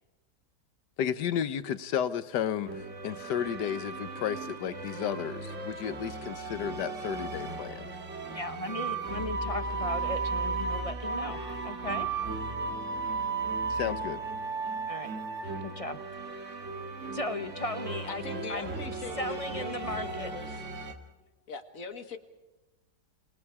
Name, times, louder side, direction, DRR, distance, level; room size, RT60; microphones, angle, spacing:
voice 1, 1.0-7.9 13.7-14.2, left 9 dB, 85° left, 13 dB, 1.6 m, -33 dB
sound 1, 2.7-20.9, right 4 dB, 45° right, 2.1 m, -35 dB
voice 2, 8.3-12.1 14.9-15.1 15.6-16.0 17.1-18.7 19.2-20.3, left 1 dB, 30° left, 10 dB, 0.6 m, -37 dB
voice 3, 18.1-20.6 21.5-22.2, left 5 dB, 55° left, 7 dB, 2.0 m, -41 dB
28.0 x 21.0 x 4.9 m, 1.1 s
omnidirectional pair, 1.8 m